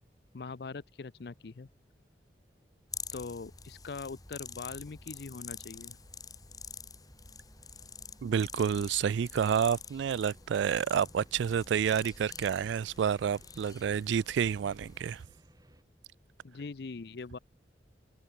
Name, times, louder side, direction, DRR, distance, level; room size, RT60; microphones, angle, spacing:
voice 1, 0.3-1.7 3.1-6.0 16.4-17.4, left 4 dB, 60° left, 0.5 m, -42 dB
sound 1, 2.9-15.2, left 6 dB, 20° left, 2.3 m, -47 dB
sound 2, 5.0-15.8, right 1 dB, 20° right, 2.5 m, -61 dB
voice 2, 8.2-15.2, right 8 dB, 80° right, 0.3 m, -29 dB
head